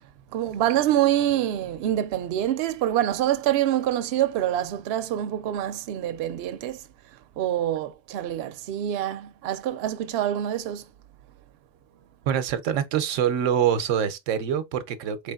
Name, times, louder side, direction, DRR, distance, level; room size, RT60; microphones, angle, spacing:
voice 1, 0.3-6.8 7.4-10.8, right 12 dB, 65° right, 0.7 m, -26 dB
voice 2, 12.3-15.3, right 9 dB, 85° right, 1.0 m, -25 dB
4.3 x 3.3 x 2.2 m
omnidirectional pair, 1.3 m